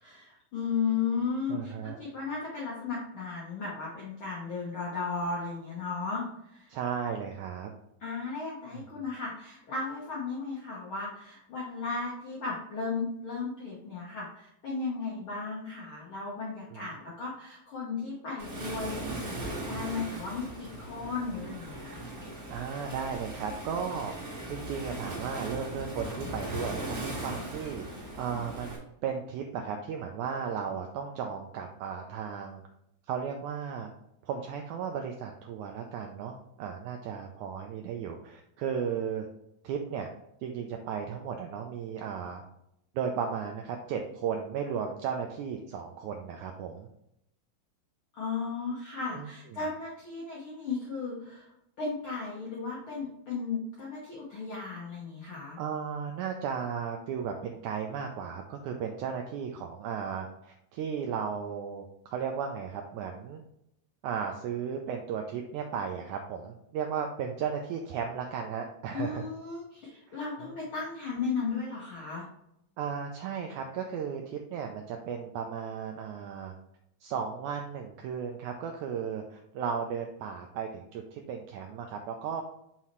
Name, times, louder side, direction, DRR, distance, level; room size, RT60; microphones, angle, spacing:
voice 1, 0.0-6.7 8.0-19.0 19.3-22.0 48.1-51.5 51.8-55.6 68.9-72.2, left 4 dB, 80° left, -4 dB, 1.1 m, -35 dB
voice 2, 1.5-2.0 6.7-7.7 8.7-8.8 16.7-16.9 22.5-24.1 24.5-28.7 29.0-32.6 33.1-33.9 34.2-39.3 39.6-40.1 40.4-42.4 42.9-46.9 49.1-49.3 55.6-63.4 64.0-69.3 70.1-70.6 72.8-76.5 77.0-82.4, right 7 dB, 90° right, 3 dB, 1.7 m, -35 dB
Waves surf, 18.4-28.8, right 1 dB, 30° right, 1.8 m, -39 dB
5.7 x 5.5 x 3.1 m, 0.79 s
omnidirectional pair, 4.1 m